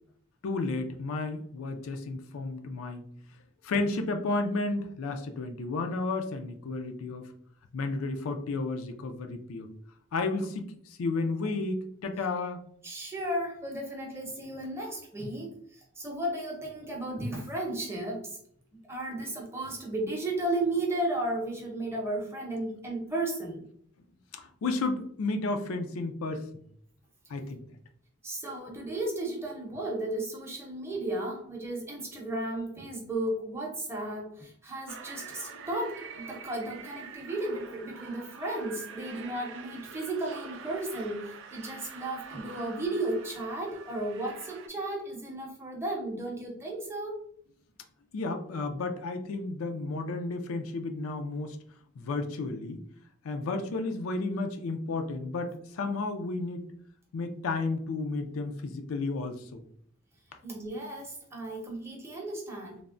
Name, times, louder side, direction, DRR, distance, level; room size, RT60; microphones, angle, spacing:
voice 1, 0.4-3.0 3.6-7.3 7.7-9.7 10.1-12.6 24.3-26.5 27.3-27.6 48.1-51.6 52.0-52.8 53.2-56.6 57.1-59.6, left 3 dB, 80° left, 6 dB, 0.4 m, -32 dB
voice 2, 12.8-18.4 18.9-23.6 28.2-47.2 60.4-62.8, right 1 dB, 10° right, -1 dB, 0.6 m, -34 dB
sound 1, 34.9-44.7, right 5 dB, 60° right, 0.3 m, -46 dB
3.3 x 2.0 x 2.4 m, 0.63 s
head